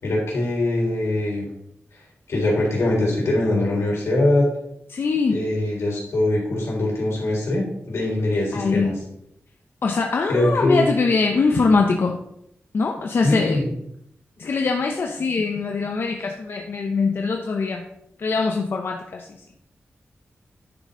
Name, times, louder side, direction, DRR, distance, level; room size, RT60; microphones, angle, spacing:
voice 1, 0.0-1.4 2.3-4.5 5.3-8.9 10.3-10.9 13.2-13.7, left 1 dB, 85° left, -3 dB, 3.5 m, -22 dB
voice 2, 4.9-5.4 8.5-9.0 9.8-12.2 12.7-13.6 14.4-17.8 18.2-19.4, left 4 dB, 60° left, 2 dB, 0.7 m, -22 dB
10.0 x 5.3 x 3.8 m, 0.76 s
wide cardioid pair, 130°, 4 cm